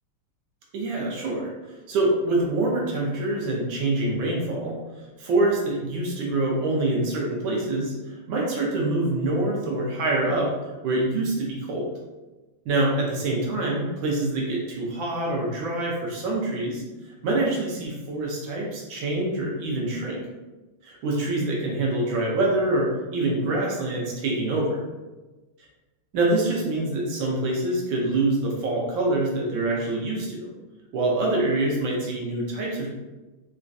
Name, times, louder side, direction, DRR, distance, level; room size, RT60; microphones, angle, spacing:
voice 1, 0.7-10.5 10.8-11.9 12.7-20.2 20.8-24.8 26.1-30.5 30.9-32.9, right 2 dB, 70° right, -2 dB, 1.3 m, -25 dB
3.8 x 2.2 x 2.5 m, 1.1 s
omnidirectional pair, 2.4 m